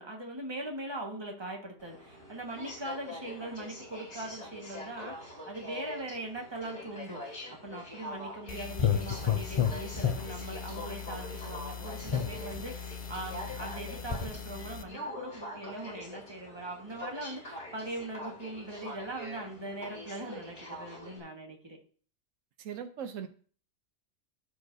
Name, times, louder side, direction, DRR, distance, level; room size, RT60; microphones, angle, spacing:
voice 1, 0.0-21.8, right 1 dB, 20° right, 0 dB, 1.6 m, -41 dB
Aircraft, 1.8-21.2, left 1 dB, 60° left, 2.8 m, -44 dB
sound 1, 8.5-14.8, left 8 dB, 40° left, 0.5 m, -33 dB
voice 2, 22.6-23.3, right 8 dB, 85° right, 9 dB, 1.1 m, -39 dB
13.5 x 4.8 x 2.7 m, 0.43 s
omnidirectional pair, 1.3 m